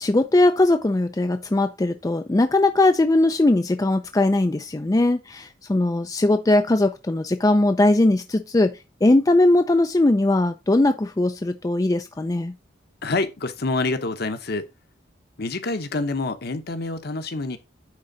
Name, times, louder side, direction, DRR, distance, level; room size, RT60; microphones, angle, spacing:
voice 1, 0.0-12.5, left 2 dB, 20° left, 0.4 m, -20 dB
voice 2, 13.0-14.7 15.4-17.6, left 3 dB, 55° left, 1.0 m, -27 dB
9.5 x 3.8 x 4.0 m
head